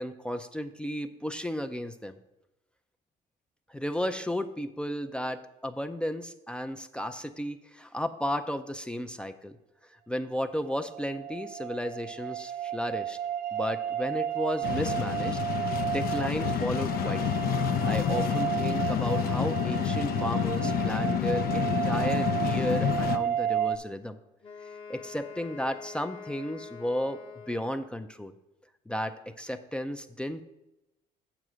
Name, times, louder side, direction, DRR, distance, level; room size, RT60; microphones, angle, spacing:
voice 1, 0.0-2.2 3.7-9.6 10.1-13.2 13.5-15.4 15.8-17.4 17.8-24.2 24.9-27.2 27.5-28.3 28.9-30.5, equal, 5° left, 7 dB, 0.4 m, -33 dB
sound 1, 10.6-23.8, right 10 dB, 75° right, 0.5 m, -32 dB
sound 2, 14.6-23.2, left 10 dB, 60° left, 0.5 m, -29 dB
Wind instrument woodwind instrument, 24.4-28.1, left 5 dB, 35° left, 0.9 m, -45 dB
7.8 x 4.8 x 6.1 m, 0.94 s
cardioid pair, 110°, 17 cm